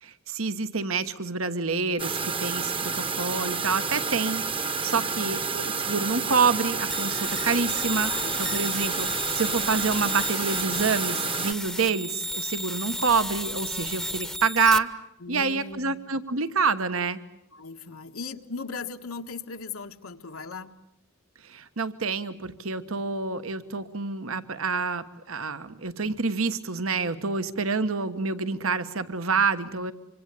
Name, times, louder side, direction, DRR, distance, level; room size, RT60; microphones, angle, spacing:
voice 1, 0.0-4.4 4.8-8.1 8.4-14.9 15.3-17.2 21.4-29.9, right 4 dB, 70° right, 11 dB, 1.4 m, -27 dB
sound 1, 2.0-11.5, right 5 dB, 25° right, 1.1 m, -30 dB
voice 2, 4.9-5.4 8.1-8.4 15.2-16.0 17.5-20.7, left 4 dB, 85° left, 6 dB, 1.5 m, -38 dB
sound 2, 6.9-14.8, equal, ahead, 0.9 m, -33 dB
26.0 x 25.5 x 8.4 m, 0.81 s
head